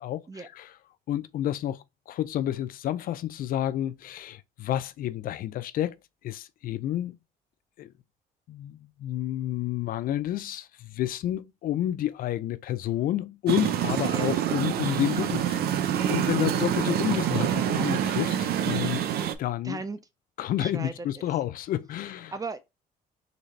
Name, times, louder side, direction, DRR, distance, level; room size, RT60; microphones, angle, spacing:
voice 1, 0.0-0.8 1.1-6.0 6.2-7.2 7.8-7.9 8.5-19.1 19.4-19.8 20.4-22.3, left 12 dB, 55° left, 0.4 m, -30 dB
sound 1, 13.5-19.3, right 10 dB, 65° right, 0.6 m, -26 dB
voice 2, 14.0-14.4 19.6-20.0 20.6-21.3 22.3-22.6, right 4 dB, 20° right, 0.6 m, -37 dB
4.0 x 3.2 x 3.2 m
cardioid pair, 110°, 17 cm